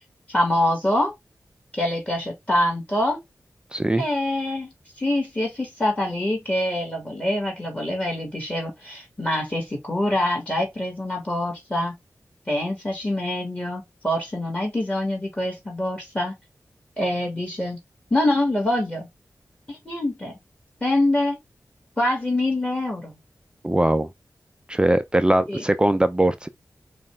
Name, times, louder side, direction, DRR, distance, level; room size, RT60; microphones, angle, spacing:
voice 1, 0.3-1.1 1.7-3.2 4.0-4.7 5.0-12.0 12.5-16.3 17.0-17.8 18.1-19.1 19.7-20.3 20.8-21.4 22.0-23.2 25.5-25.6, left 1 dB, 20° left, 2.0 m, -25 dB
voice 2, 3.7-4.0 23.6-24.1 24.7-26.5, right 1 dB, 15° right, 0.4 m, -20 dB
5.6 x 2.4 x 3.4 m
wide cardioid pair, 75°, 6 cm